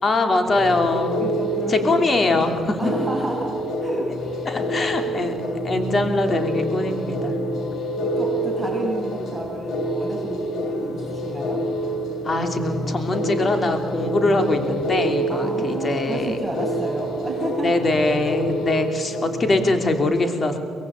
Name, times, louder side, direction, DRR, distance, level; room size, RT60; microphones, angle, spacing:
voice 1, 0.0-1.3 1.7-2.8 4.4-5.4 5.6-7.4 12.2-16.4 17.6-20.6, left 2 dB, 35° left, 6 dB, 3.1 m, -22 dB
sound 1, 0.5-20.0, equal, 70° left, 2.7 m, -27 dB
voice 2, 0.8-2.1 2.8-5.5 7.3-11.6 15.3-17.7, right 1 dB, 5° right, -3 dB, 6.7 m, -31 dB
23.5 x 22.0 x 8.7 m, 2.2 s
cardioid pair, 90°, 0 cm